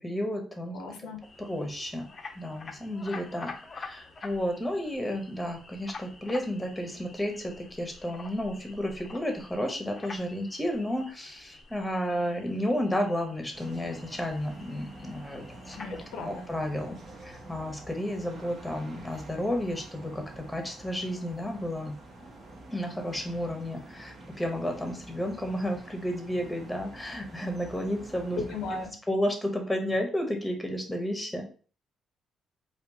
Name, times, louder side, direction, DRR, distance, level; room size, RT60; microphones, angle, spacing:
voice 1, 0.0-0.8 1.4-2.1 2.3-15.8 16.2-17.0 17.2-21.9 22.7-28.4 29.1-31.5, equal, 10° left, 3 dB, 0.9 m, -32 dB
voice 2, 0.7-1.2 15.7-16.5 28.4-29.0, left 3 dB, 90° left, 4 dB, 0.7 m, -36 dB
sound 1, 1.2-16.0, left 4 dB, 40° left, 0.6 m, -47 dB
sound 2, 13.5-28.9, right 1 dB, 60° right, 1.2 m, -48 dB
4.3 x 2.4 x 2.8 m, 0.39 s
cardioid pair, 90°, 0 cm